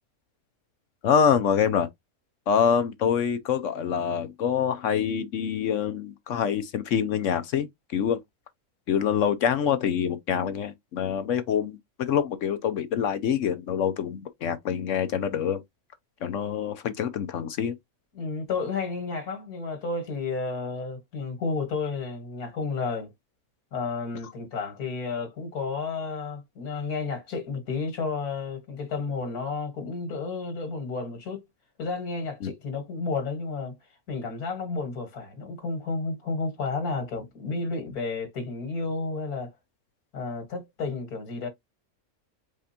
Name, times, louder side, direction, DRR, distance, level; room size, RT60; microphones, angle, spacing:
voice 1, 1.0-1.9 2.5-7.7 7.9-8.2 8.9-15.6 16.2-17.7 32.4-32.5, left 8 dB, 65° left, 0.9 m, -25 dB
voice 2, 18.1-23.1 23.7-31.4 31.8-33.8 34.1-39.5 40.1-41.5, left 4 dB, 85° left, 2.1 m, -31 dB
5.0 x 3.3 x 2.8 m
omnidirectional pair, 1.6 m